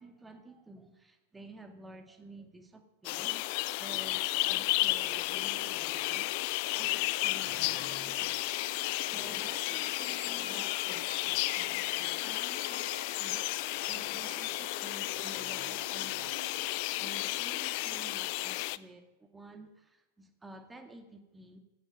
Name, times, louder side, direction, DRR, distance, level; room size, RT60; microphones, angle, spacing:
voice 1, 0.0-3.5 3.8-6.3 6.7-13.4 13.8-21.6, right 2 dB, 10° right, 6 dB, 2.1 m, -51 dB
sound 1, 3.0-18.8, left 21 dB, 45° left, 0.5 m, -33 dB
sound 2, 5.0-18.6, left 2 dB, 85° left, 1.0 m, -53 dB
sound 3, 7.0-16.9, right 3 dB, 65° right, 4.3 m, -53 dB
16.5 x 15.5 x 5.5 m, 1.0 s
figure-of-eight pair, 90°, 0 cm